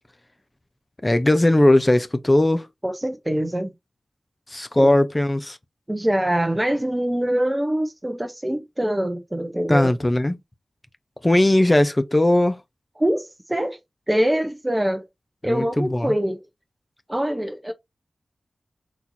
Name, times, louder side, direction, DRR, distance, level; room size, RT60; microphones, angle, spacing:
voice 1, 1.0-2.7 4.5-5.6 9.7-10.4 11.2-12.6 15.4-16.1, left 1 dB, 20° left, 0.6 m, -18 dB
voice 2, 2.8-3.7 4.8-5.0 5.9-9.9 13.0-13.8 14.1-15.0 15.4-16.4 17.1-17.7, right 1 dB, 15° right, 0.8 m, -24 dB
4.4 x 4.0 x 2.7 m
wide cardioid pair, 85°, 0 cm